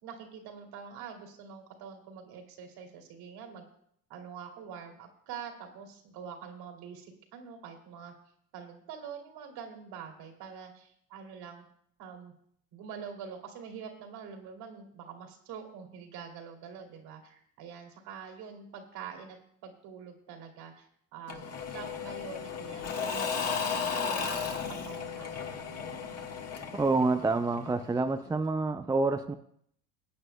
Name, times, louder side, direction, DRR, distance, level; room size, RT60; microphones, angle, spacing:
voice 1, 0.0-3.6 4.1-8.1 8.5-11.7 12.0-12.3 12.7-19.4 19.6-25.7 26.2-26.4, right 7 dB, 55° right, 3 dB, 2.7 m, -45 dB
Engine / Mechanisms / Drill, 21.3-28.0, left 6 dB, 30° left, 1.7 m, -35 dB
voice 2, 26.7-29.4, right 3 dB, 10° right, 7 dB, 0.5 m, -27 dB
22.5 x 9.0 x 2.3 m, 0.68 s
hypercardioid pair, 75°, 46 cm